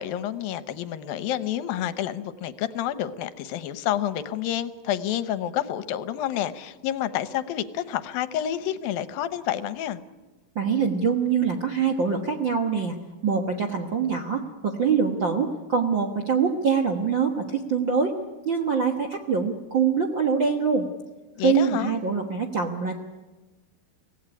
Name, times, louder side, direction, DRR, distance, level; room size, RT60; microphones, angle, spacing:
voice 1, 0.0-10.0 21.4-21.9, left 11 dB, 80° left, 13 dB, 2.6 m, -29 dB
voice 2, 10.5-12.9 13.2-18.2 18.4-20.9 21.4-22.9, right 6 dB, 55° right, 4 dB, 1.3 m, -24 dB
25.0 x 17.5 x 9.9 m, 1.2 s
omnidirectional pair, 4.2 m